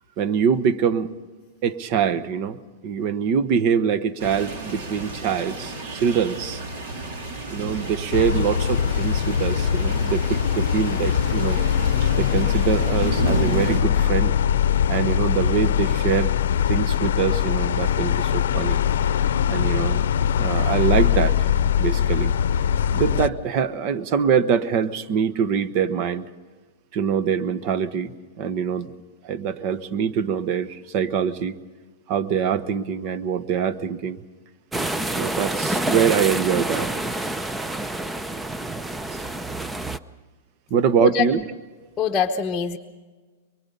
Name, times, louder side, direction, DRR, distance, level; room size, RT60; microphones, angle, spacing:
voice 1, 0.2-1.1 1.6-2.6 2.8-6.6 7.5-11.6 12.2-14.4 14.9-18.8 19.0-19.2 19.5-20.0 20.4-21.5 21.8-22.3 22.9-26.3 26.9-28.9 29.2-31.6 32.1-34.2 35.1-36.9 40.7-41.5, right 7 dB, 45° right, 14 dB, 1.1 m, -24 dB
sound 1, 4.2-13.8, right 2 dB, 60° right, 3.9 m, -32 dB
sound 2, 8.1-23.3, left 8 dB, 80° left, 0.7 m, -22 dB
sound 3, 34.7-40.0, right 1 dB, 10° right, 0.6 m, -27 dB
voice 2, 42.0-42.8, left 7 dB, 20° left, 3 dB, 1.0 m, -23 dB
23.5 x 23.5 x 5.5 m, 1.4 s
hypercardioid pair, 140°, 0 cm